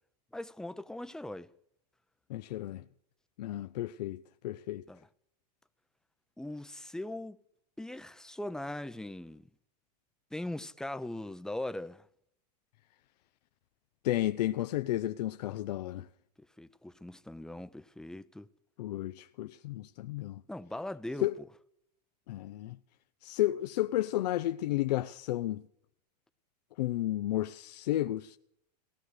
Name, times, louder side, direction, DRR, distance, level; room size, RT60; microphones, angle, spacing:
voice 1, 0.3-1.5 4.9-5.0 6.4-7.4 7.8-9.5 10.3-12.0 16.4-18.5 20.5-21.3, left 1 dB, 5° left, 0.6 m, -40 dB
voice 2, 2.3-2.8 3.4-4.8 14.0-16.1 18.8-20.4 21.2-21.3 22.3-22.8 23.2-25.6 26.8-28.4, left 14 dB, 75° left, 0.6 m, -32 dB
17.0 x 13.0 x 6.5 m
hypercardioid pair, 115°, 21 cm